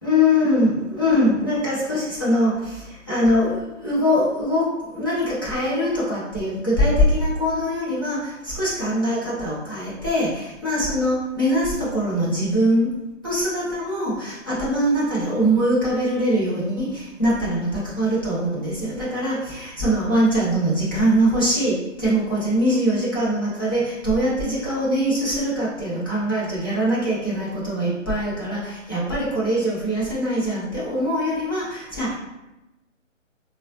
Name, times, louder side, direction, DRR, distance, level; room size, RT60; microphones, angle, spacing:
voice 1, 0.0-12.9 13.2-32.1, equal, 20° left, -9 dB, 0.4 m, -22 dB
3.6 x 2.0 x 2.6 m, 0.98 s
hypercardioid pair, 150°, 38 cm